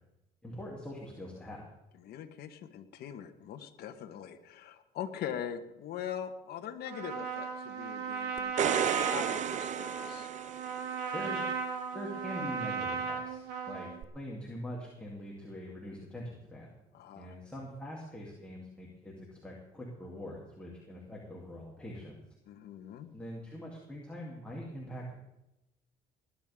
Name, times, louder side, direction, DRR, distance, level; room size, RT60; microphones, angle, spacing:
voice 1, 0.4-1.6 11.1-11.4 11.9-16.7 17.2-22.2 23.1-25.2, left 1 dB, 5° left, -5 dB, 3.2 m, -43 dB
voice 2, 2.0-10.3 16.9-17.3 22.5-23.1, left 9 dB, 70° left, 6 dB, 1.5 m, -42 dB
Trumpet, 6.8-14.0, right 5 dB, 85° right, 2.2 m, -36 dB
sound 1, 8.4-10.9 14.0-14.1, right 9 dB, 45° right, 0.5 m, -32 dB
20.0 x 11.5 x 3.8 m, 0.89 s
cardioid pair, 110°, 17 cm